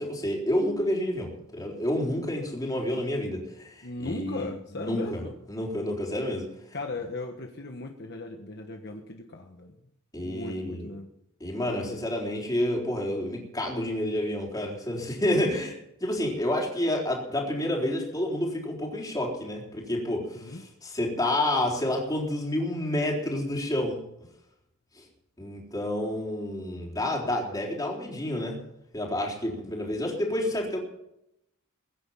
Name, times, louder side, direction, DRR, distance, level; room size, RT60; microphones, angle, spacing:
voice 1, 0.0-4.4 4.8-5.2 5.5-6.5 10.1-10.9 11.4-24.0 25.0-25.1 25.4-28.6 28.9-30.8, left 1 dB, 15° left, -1 dB, 3.9 m, -29 dB
voice 2, 3.8-5.3 6.7-9.8 10.2-11.1 20.3-20.6, left 2 dB, 50° left, 3 dB, 1.3 m, -37 dB
21.5 x 10.0 x 5.7 m, 0.83 s
head